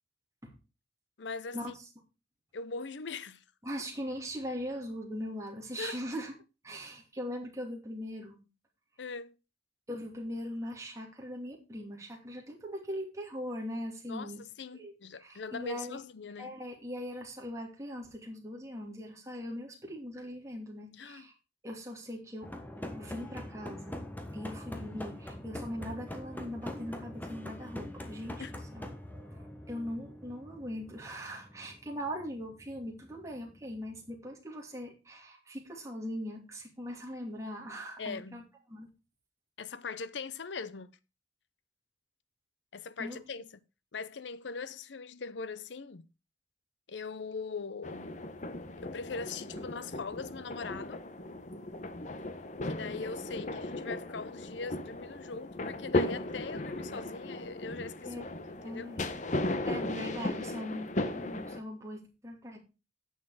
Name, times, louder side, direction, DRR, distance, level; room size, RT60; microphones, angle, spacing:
voice 1, 1.2-1.7 2.5-3.4 5.8-6.0 9.0-9.3 14.1-16.5 21.0-21.2 28.4-28.5 38.0-38.4 39.6-41.0 42.7-43.4 43.9-46.1 46.9-48.1 48.8-51.1 52.6-58.9, left 4 dB, 75° left, 0.7 m, -41 dB
voice 2, 3.6-6.3 6.6-8.4 9.9-14.4 14.7-14.9 15.2-16.0 16.4-21.3 21.6-22.5 22.9-24.0 24.3-28.4 28.7-28.9 29.3-38.4 38.7-38.9 43.0-43.2 58.0-58.2 58.6-59.0 59.6-62.6, equal, 15° right, 2.6 m, -40 dB
sound 1, 22.4-34.3, left 1 dB, 10° left, 1.3 m, -44 dB
sound 2, 47.8-61.6, left 2 dB, 45° left, 0.9 m, -36 dB
9.9 x 6.6 x 4.8 m
head